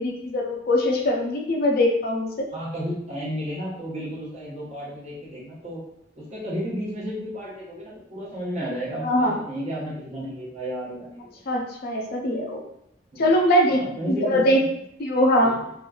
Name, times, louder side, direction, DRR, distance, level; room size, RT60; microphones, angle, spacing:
voice 1, 0.0-2.5 9.0-9.4 11.5-12.6 13.2-14.6 15.0-15.5, left 1 dB, 50° left, 1 dB, 0.4 m, -22 dB
voice 2, 2.5-5.8 6.2-11.3 13.1-13.3 13.7-14.6 15.4-15.6, equal, 35° right, -7 dB, 0.9 m, -32 dB
3.0 x 2.4 x 2.3 m, 0.74 s
head